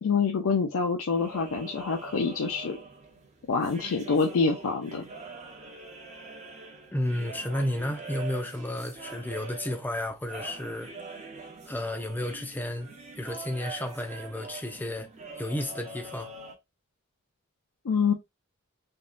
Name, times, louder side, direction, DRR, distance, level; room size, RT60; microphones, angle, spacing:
voice 1, 0.0-2.8 3.5-5.0 17.8-18.1, left 5 dB, 80° left, 0.5 m, -26 dB
sound 1, 1.1-16.5, right 3 dB, 35° right, 0.6 m, -44 dB
voice 2, 6.9-10.9 11.7-12.9 13.2-15.1 15.4-16.3, left 1 dB, 10° left, 0.4 m, -32 dB
3.5 x 2.1 x 2.5 m
head